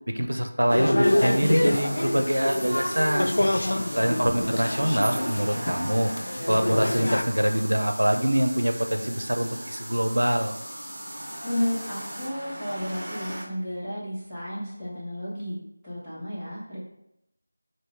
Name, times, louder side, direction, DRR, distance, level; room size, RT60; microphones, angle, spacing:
voice 1, 0.1-3.3 4.0-6.1 6.5-10.5, equal, 75° right, 5 dB, 0.6 m, -24 dB
sound 1, 0.6-13.4, right 1 dB, 35° right, 1.0 m, -41 dB
sound 2, 0.7-7.2, left 1 dB, 60° left, 0.4 m, -26 dB
sound 3, 1.0-12.3, equal, 20° right, 1.1 m, -41 dB
voice 2, 4.0-4.6 11.4-16.8, equal, 5° right, -17 dB, 1.3 m, -32 dB
3.6 x 2.6 x 4.4 m, 0.81 s
figure-of-eight pair, 170°, 0 cm